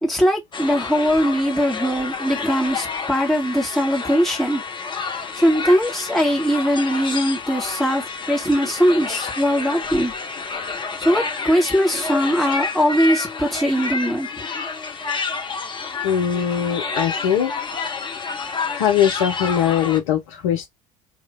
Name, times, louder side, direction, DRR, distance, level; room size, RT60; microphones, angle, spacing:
voice 1, 0.0-4.6 5.4-10.1 11.0-14.3, equal, ahead, 2.1 m, -20 dB
sound 1, 0.5-20.0, left 4 dB, 25° left, 1.3 m, -29 dB
voice 2, 16.0-17.5 18.7-20.7, left 9 dB, 70° left, 0.9 m, -21 dB
3.2 x 2.9 x 3.8 m
figure-of-eight pair, 60°, 17 cm